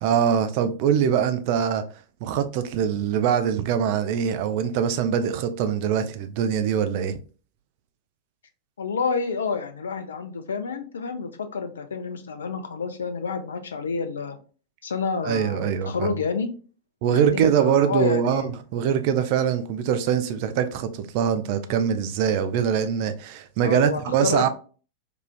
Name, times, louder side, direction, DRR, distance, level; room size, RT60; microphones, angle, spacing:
voice 1, 0.0-1.8 2.2-7.2 15.2-16.1 17.0-24.5, right 8 dB, 45° right, 0.4 m, -23 dB
voice 2, 8.8-14.4 14.8-16.5 17.1-18.6 23.6-24.5, left 5 dB, 70° left, 0.5 m, -29 dB
4.8 x 2.4 x 2.2 m
figure-of-eight pair, 90°, 0 cm